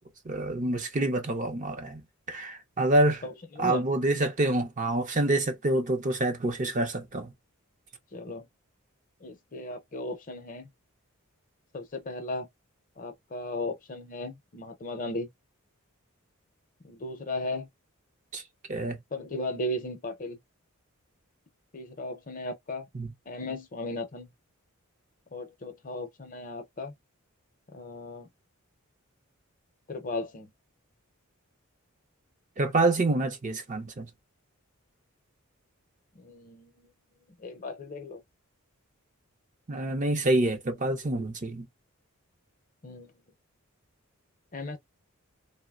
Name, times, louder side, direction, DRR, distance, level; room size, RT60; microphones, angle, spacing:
voice 1, 0.3-2.0 2.3-3.2 3.6-7.3 18.3-18.4 18.7-19.0 22.9-23.1 32.6-34.1 39.7-41.7, right 2 dB, 35° right, 0.6 m, -27 dB
voice 2, 3.2-3.8 8.1-8.5 9.2-10.7 11.7-12.5 13.0-15.3 16.8-17.7 19.1-20.4 21.7-22.9 23.3-24.3 25.3-26.9 27.7-28.3 29.9-30.5 36.1-36.9 37.4-38.2 42.8-43.1 44.5-44.8, left 2 dB, 35° left, 0.6 m, -36 dB
3.8 x 2.1 x 2.3 m
head